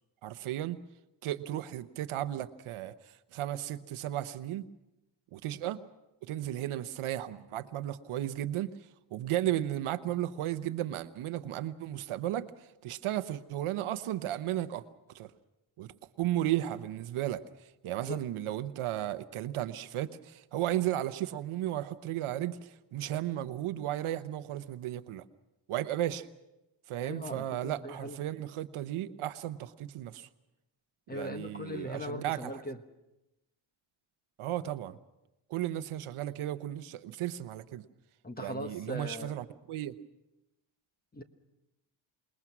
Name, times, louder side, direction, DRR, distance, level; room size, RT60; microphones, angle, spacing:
voice 1, 0.2-0.8 1.2-4.7 5.3-5.8 6.2-8.8 9.1-14.8 15.1-15.3 15.8-17.4 17.8-25.2 25.7-26.3 26.9-30.3 31.1-32.6 34.4-35.0 35.5-37.8 38.4-39.9, right 13 dB, 80° right, 12 dB, 1.0 m, -34 dB
voice 2, 27.0-28.2 31.1-32.8 38.2-39.3 41.1-41.2, left 1 dB, 20° left, 7 dB, 1.5 m, -39 dB
27.0 x 20.5 x 6.0 m, 0.95 s
cardioid pair, 140°, 49 cm